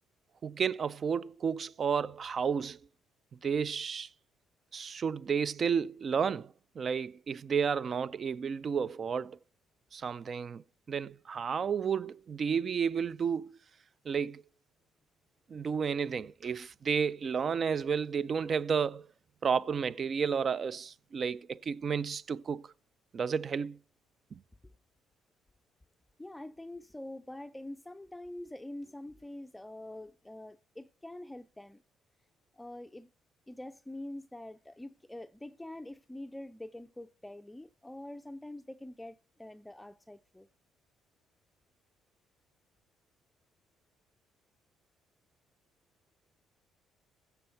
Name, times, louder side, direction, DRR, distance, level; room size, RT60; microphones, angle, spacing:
voice 1, 0.4-2.8 3.4-4.1 4.7-9.4 9.9-10.6 10.9-13.6 14.1-14.4 15.5-19.1 19.4-22.7 23.1-23.8 24.3-24.4, right 6 dB, 45° right, 0.4 m, -32 dB
voice 2, 26.2-31.8 32.5-33.1 33.5-40.5, left 1 dB, 10° left, 0.5 m, -45 dB
15.0 x 7.0 x 4.4 m
supercardioid pair, 65°, 0 cm